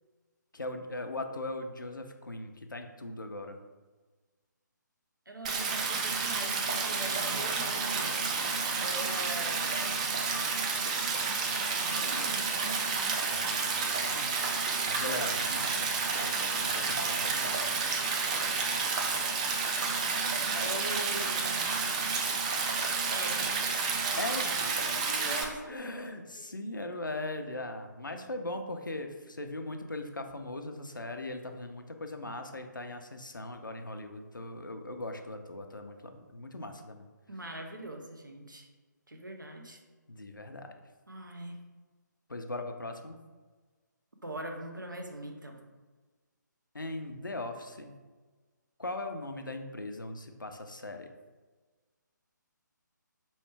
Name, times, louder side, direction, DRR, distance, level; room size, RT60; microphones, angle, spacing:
voice 1, 0.5-3.6 13.3-14.3 14.9-17.7 24.2-24.9 25.7-36.0 36.3-37.1 40.1-40.7 42.3-43.2 46.7-48.0 48.8-51.1, left 2 dB, 85° left, 5 dB, 0.5 m, -39 dB
voice 2, 5.3-8.1 8.8-9.9 11.5-12.5 20.5-21.8 23.1-23.6 24.0-26.1 37.3-38.7 39.1-39.8 41.1-41.6 44.2-45.6, right 1 dB, 85° right, 3 dB, 0.7 m, -42 dB
Stream, 5.4-25.4, right 4 dB, 20° right, 0.3 m, -30 dB
4.2 x 3.1 x 3.3 m, 1.3 s
figure-of-eight pair, 145°, 10 cm